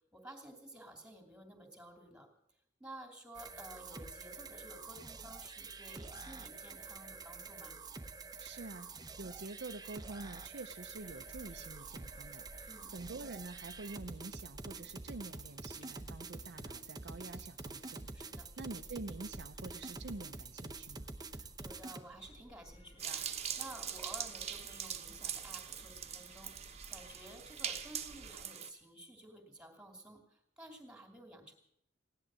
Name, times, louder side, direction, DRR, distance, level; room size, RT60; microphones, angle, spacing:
voice 1, 0.1-2.3 2.8-7.8 12.7-12.9 18.1-18.5 21.3-31.5, right 1 dB, 5° right, 4 dB, 2.7 m, -53 dB
sound 1, 3.3-22.0, right 3 dB, 20° right, 0.8 m, -47 dB
voice 2, 8.4-8.9 9.2-21.1, right 3 dB, 65° right, 8 dB, 0.7 m, -47 dB
sound 2, 11.0-28.4, equal, 35° left, 2.1 m, -58 dB
sound 3, 23.0-28.7, right 8 dB, 35° right, 1.1 m, -42 dB
16.5 x 11.0 x 7.5 m, 0.73 s
head